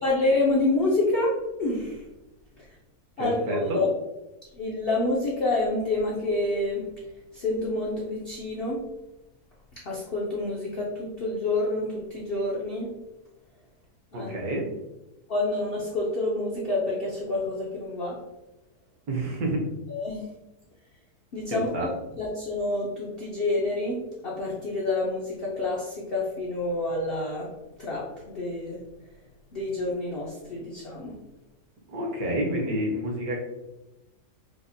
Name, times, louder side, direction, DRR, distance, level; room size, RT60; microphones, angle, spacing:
voice 1, 0.0-2.0 3.2-3.9 4.5-6.9 7.3-8.9 9.8-12.9 14.1-14.3 15.3-18.2 19.9-20.3 21.3-21.9 22.2-27.5 27.8-28.8 29.5-31.2, left 2 dB, 70° left, -4 dB, 0.5 m, -28 dB
voice 2, 3.2-3.8 14.1-14.6 19.1-19.6 21.5-21.9 31.9-33.4, right 1 dB, 70° right, -1 dB, 1.2 m, -29 dB
4.9 x 2.1 x 2.6 m, 0.99 s
omnidirectional pair, 1.7 m